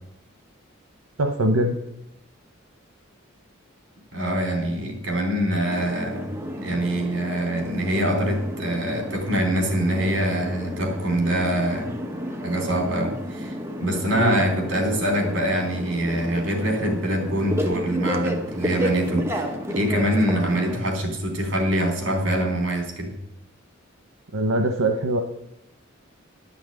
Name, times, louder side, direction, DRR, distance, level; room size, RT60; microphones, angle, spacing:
voice 1, 1.2-1.8 14.2-14.4 24.3-25.2, right 1 dB, 85° right, 5 dB, 0.9 m, -22 dB
voice 2, 4.1-6.3 6.6-12.0 12.4-23.1, right 1 dB, 60° right, 3 dB, 3.2 m, -24 dB
sound 1, 5.6-20.8, equal, 10° right, 1.1 m, -32 dB
11.5 x 6.0 x 8.9 m, 0.84 s
head